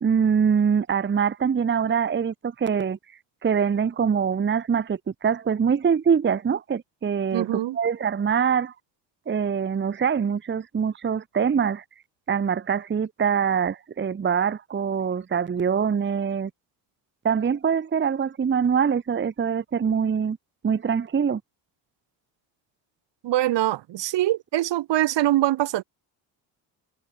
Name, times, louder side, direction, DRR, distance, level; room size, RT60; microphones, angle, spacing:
voice 1, 0.0-3.0 3.4-8.7 9.3-11.8 12.3-16.5 17.2-20.4 20.6-21.4, right 7 dB, 25° right, 0.9 m, -24 dB
voice 2, 7.3-7.8 23.2-25.8, right 14 dB, 65° right, 1.8 m, -23 dB
supercardioid pair, 80°, 47 cm